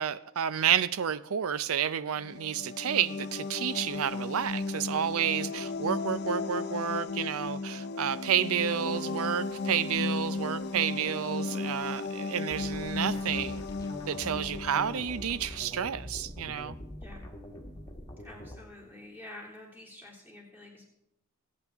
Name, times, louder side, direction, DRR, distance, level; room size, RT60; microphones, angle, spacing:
voice 1, 0.0-13.6 14.1-16.8, right 8 dB, 75° right, 0.5 m, -30 dB
sound 1, 2.2-15.8, left 3 dB, 45° left, 0.5 m, -35 dB
sound 2, 12.5-18.6, left 1 dB, 15° left, 1.5 m, -44 dB
voice 2, 18.2-20.8, left 2 dB, 10° right, 3.1 m, -48 dB
24.5 x 8.5 x 3.5 m
head